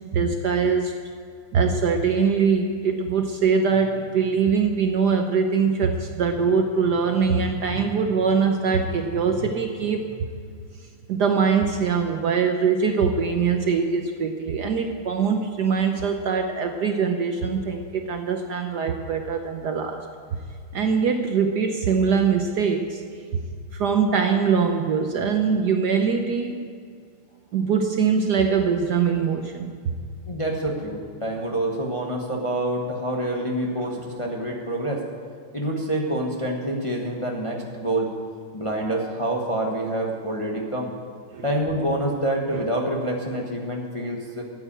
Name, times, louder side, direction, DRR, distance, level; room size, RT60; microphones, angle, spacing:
voice 1, 0.1-1.0 1.5-10.1 11.1-20.0 20.3-20.4 20.7-23.0 23.3-23.4 23.7-26.6 27.5-30.0 33.9-34.0 41.3-41.5, right 5 dB, 60° right, 5 dB, 1.2 m, -22 dB
voice 2, 30.3-35.0 35.5-38.1 38.5-40.9 41.4-44.4, right 1 dB, 20° left, 0 dB, 0.9 m, -27 dB
13.5 x 8.1 x 8.8 m, 2.2 s
omnidirectional pair, 2.3 m